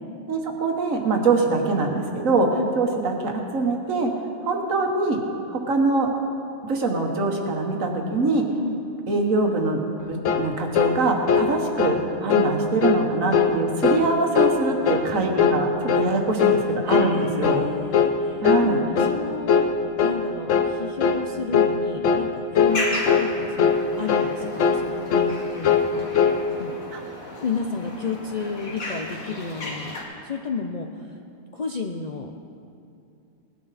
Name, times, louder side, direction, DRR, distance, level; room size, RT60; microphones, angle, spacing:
voice 1, 0.3-4.1 4.4-5.2 5.5-6.1 6.6-8.5 9.1-9.8 10.1-17.6 18.4-18.8 26.9-27.0, right 3 dB, 70° right, 2 dB, 1.7 m, -23 dB
sound 1, 10.3-10.5 10.8-11.0 11.3-11.5 11.8-12.0 12.3-12.5 12.8-13.0 13.3-13.6 13.8-14.1 14.4-14.6 14.9-15.1 15.4-15.6 15.9-16.1 16.4-16.6 16.9-17.1 17.4-17.7 17.9-18.2 18.4-18.7 19.0-19.2 19.5-19.7 20.0-20.2 20.5-20.7 21.0-21.2 21.5-21.8 22.0-22.3 22.6-22.8 23.1-23.3 23.6-23.8 24.1-24.3 24.6-24.9 25.1-25.3 25.6-25.9 26.1-26.4, left 7 dB, 65° left, 1.1 m, -20 dB
voice 2, 16.9-19.7 20.0-26.1 26.6-26.7 27.4-30.0 30.2-30.9 31.5-32.3, left 4 dB, 50° left, 2 dB, 0.5 m, -32 dB
sound 2, 22.7-30.0, left 1 dB, 90° left, 2.1 m, -35 dB
19.0 x 10.0 x 4.2 m, 2.6 s
omnidirectional pair, 1.4 m